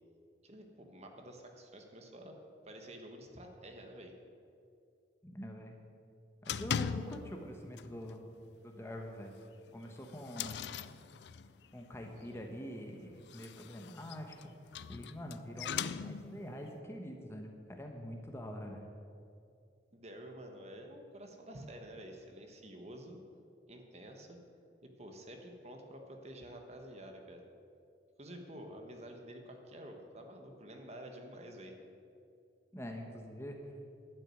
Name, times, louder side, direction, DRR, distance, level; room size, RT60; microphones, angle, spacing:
voice 1, 0.4-2.4 2.6-4.1 19.9-23.2 23.7-24.4 24.8-27.4 28.2-31.8, right 1 dB, 40° right, 3 dB, 1.3 m, -49 dB
voice 2, 5.2-5.8 6.4-8.2 8.6-9.3 9.7-10.7 11.7-14.5 14.9-18.9 32.7-33.7, equal, 15° left, 2 dB, 1.1 m, -45 dB
sound 1, 6.5-7.5 7.8-8.1 8.5-8.6 9.0-9.1 9.7-11.7 13.1-16.5, left 7 dB, 70° left, 0.4 m, -40 dB
12.0 x 6.4 x 9.3 m, 2.4 s
head